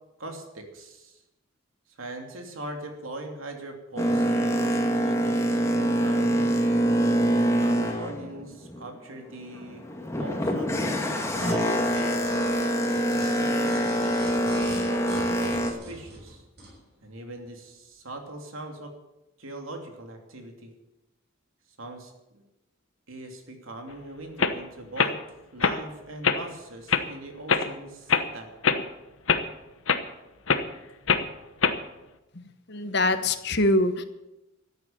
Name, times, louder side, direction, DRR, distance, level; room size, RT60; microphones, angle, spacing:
voice 1, 0.2-1.2 2.0-6.7 7.6-9.9 10.2-10.7 11.0-12.4 13.4-14.1 14.5-16.4 17.0-18.9 19.4-20.7 21.8-22.4 23.1-25.1 25.5-28.5, right 2 dB, 85° right, 3 dB, 2.9 m, -41 dB
Boat Water vehicle, 4.0-9.0 9.4-15.7, right 1 dB, 15° left, 1.8 m, -25 dB
sound 1, 11.3-16.8 17.3-17.4, equal, 50° right, 6.4 m, -41 dB
sound 2, 23.9-24.0 24.4-24.6 25.0-25.1 25.6-25.8 26.2-26.4 26.9-27.0 27.5-27.7 28.1-28.3 28.6-28.8 29.3-29.4 29.9-30.0 30.5-30.7 31.1-31.3 31.6-31.8, left 5 dB, 75° left, 1.1 m, -23 dB
voice 2, 32.7-34.0, left 1 dB, 55° left, 10 dB, 1.2 m, -23 dB
14.0 x 9.7 x 8.7 m, 0.98 s
head